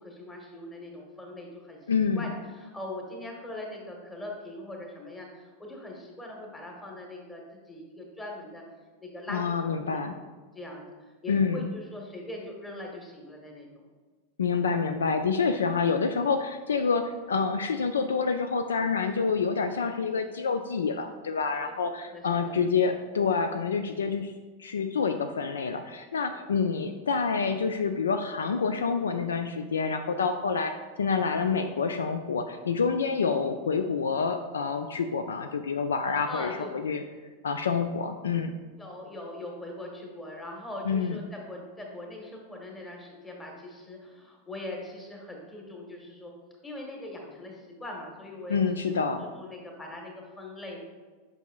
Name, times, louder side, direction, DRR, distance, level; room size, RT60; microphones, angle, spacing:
voice 1, 0.0-1.9 2.1-8.6 9.0-10.2 10.5-10.8 11.2-13.7 21.6-21.7 22.1-22.6 26.3-26.5 36.3-36.8 38.8-46.3 46.6-49.1 49.4-50.8, left 1 dB, 15° left, 0 dB, 1.3 m, -41 dB
voice 2, 1.9-2.3 9.3-10.1 11.3-11.7 14.4-24.3 24.6-37.0 37.4-38.5 40.8-41.2 48.5-49.2, left 5 dB, 70° left, 8 dB, 0.3 m, -27 dB
8.0 x 5.4 x 2.4 m, 1.4 s
figure-of-eight pair, 90°, 0 cm